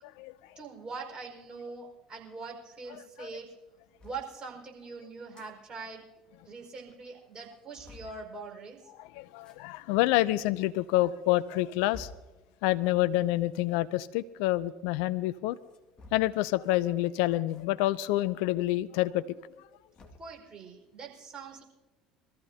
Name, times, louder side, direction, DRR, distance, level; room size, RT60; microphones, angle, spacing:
voice 1, 0.6-3.6 4.0-6.0 6.4-8.8 20.2-21.6, right 4 dB, 30° right, 0 dB, 5.2 m, -43 dB
sound 1, 4.0-4.2 5.1-5.5 5.9-6.0 6.2-6.3 6.9-7.0 7.3-8.2 9.3-9.6 10.4-10.5 11.2-12.3 13.5-13.7 15.5-16.5 17.5-17.7 18.0-18.1 19.4-20.4, left 1 dB, 30° left, 1.9 m, -51 dB
voice 2, 9.0-12.1 12.6-15.6 16.1-19.3, left 16 dB, 65° left, 17 dB, 0.4 m, -27 dB
24.0 x 14.0 x 2.8 m, 1.1 s
figure-of-eight pair, 60°, 3 cm